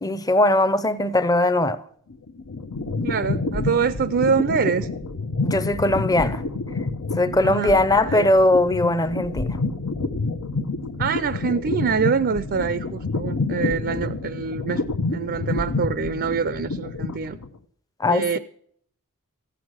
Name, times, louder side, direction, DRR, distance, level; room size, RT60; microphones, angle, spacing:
voice 1, 0.0-1.8 5.4-6.4 7.2-9.5 18.0-18.4, left 1 dB, 15° left, 0.6 m, -20 dB
sound 1, 2.1-17.6, left 3 dB, 80° left, 0.8 m, -28 dB
voice 2, 3.0-4.9 7.4-7.7 8.0-8.3 11.0-14.8 15.1-17.4 18.1-18.4, right 6 dB, 50° right, 0.4 m, -25 dB
14.5 x 9.1 x 6.3 m
head